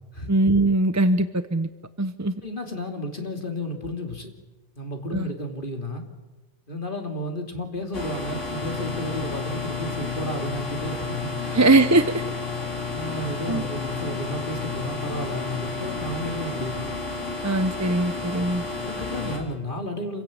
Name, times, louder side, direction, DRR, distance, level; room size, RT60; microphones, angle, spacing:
voice 1, 0.3-1.7 2.0-2.3 5.1-5.3 11.5-12.2 13.5-13.6 17.4-18.6, right 2 dB, 15° right, 11 dB, 0.6 m, -21 dB
voice 2, 2.4-4.3 4.8-6.0 6.7-11.6 12.9-16.9 18.8-20.2, equal, 40° left, 3 dB, 3.0 m, -32 dB
sound 1, 7.9-19.4, left 4 dB, 70° left, 3.8 m, -31 dB
27.0 x 16.5 x 8.7 m, 1.1 s
omnidirectional pair, 1.3 m